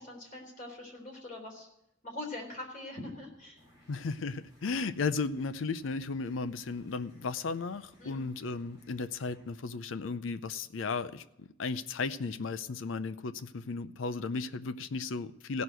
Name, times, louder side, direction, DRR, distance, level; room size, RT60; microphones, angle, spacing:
voice 1, 0.0-1.7 2.0-3.6 8.0-8.3, left 2 dB, 40° left, 0 dB, 3.6 m, -43 dB
sound 1, 3.6-9.6, equal, 55° left, 5.2 m, -62 dB
voice 2, 3.9-15.6, left 4 dB, 80° left, 13 dB, 0.5 m, -35 dB
15.5 x 6.4 x 9.0 m, 0.83 s
head